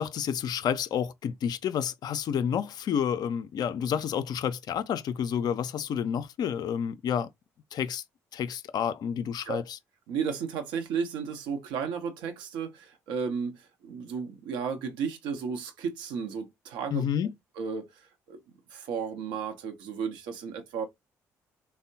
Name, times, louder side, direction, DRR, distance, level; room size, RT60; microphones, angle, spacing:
voice 1, 0.0-7.3 7.7-8.0 8.3-9.8 16.9-17.3, left 8 dB, 55° left, 0.4 m, -30 dB
voice 2, 10.1-17.1 17.6-18.4 18.7-20.9, right 6 dB, 70° right, 0.7 m, -34 dB
3.4 x 2.0 x 2.6 m
hypercardioid pair, 50°, 8 cm